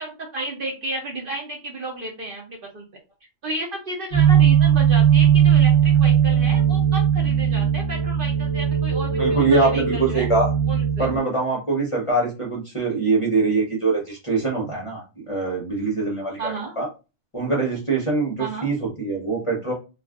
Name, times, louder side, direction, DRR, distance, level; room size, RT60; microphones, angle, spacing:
voice 1, 0.0-2.8 3.4-10.3 10.7-11.1 16.4-16.7 18.4-18.7, right 2 dB, 55° right, 0 dB, 0.7 m, -32 dB
sound 1, 4.1-11.2, right 8 dB, 25° right, 1.0 m, -18 dB
voice 2, 9.1-10.5 11.0-16.9 17.3-19.7, right 3 dB, 30° left, -2 dB, 0.6 m, -23 dB
2.4 x 2.3 x 3.4 m, 0.31 s
omnidirectional pair, 1.4 m